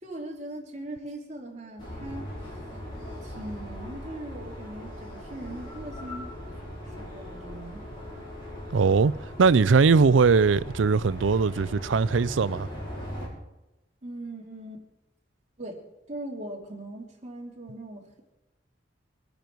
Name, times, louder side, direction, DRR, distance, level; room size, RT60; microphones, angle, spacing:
voice 1, 0.0-2.3 3.2-6.3 6.9-7.9 14.0-14.8 15.6-18.2, right 1 dB, 40° right, 2.9 m, -40 dB
sound 1, 1.8-13.3, equal, 25° left, 6.2 m, -39 dB
voice 2, 8.7-9.1 9.4-12.7, right 5 dB, 90° right, 0.5 m, -20 dB
24.5 x 10.5 x 4.6 m
head